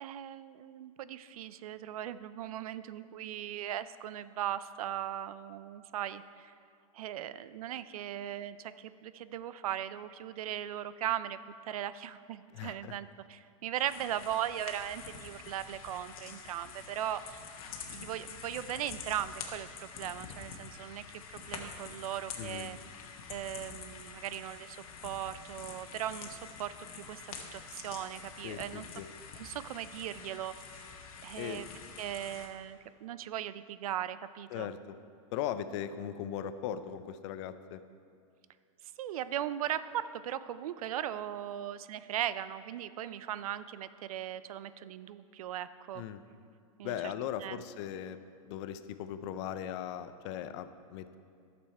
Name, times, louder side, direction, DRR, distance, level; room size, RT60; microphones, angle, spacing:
voice 1, 0.0-6.5 6.9-11.4 11.7-17.4 17.9-21.0 21.3-22.8 23.3-24.8 25.0-28.9 29.4-31.0 31.2-31.7 32.0-34.7 39.0-46.0 46.8-47.1 47.4-47.6, right 11 dB, 85° right, 14 dB, 0.4 m, -38 dB
voice 2, 12.5-13.0 22.4-22.7 28.4-29.1 31.4-31.6 34.5-35.0 35.3-37.8 45.9-46.2 46.8-48.2 48.4-51.2, left 10 dB, 55° left, 12 dB, 0.5 m, -38 dB
sound 1, 13.9-32.5, left 6 dB, 80° left, 1.2 m, -47 dB
11.5 x 6.8 x 4.3 m, 2.3 s
supercardioid pair, 135°, 18 cm